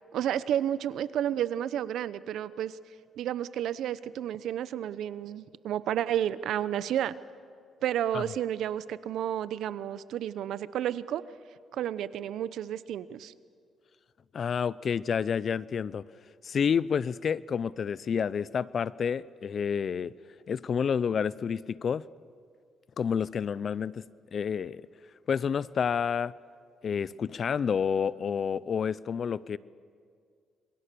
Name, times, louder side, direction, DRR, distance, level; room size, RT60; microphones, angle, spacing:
voice 1, 0.1-2.8 3.2-7.1 7.8-11.2 11.7-13.3, right 10 dB, 75° right, 16 dB, 0.8 m, -31 dB
voice 2, 14.3-16.0 16.4-20.1 20.5-22.0 23.0-24.0 24.3-24.9 25.3-26.3 26.8-29.6, left 7 dB, 50° left, 21 dB, 0.5 m, -29 dB
27.0 x 21.5 x 6.9 m, 2.2 s
cardioid pair, 90°, 0 cm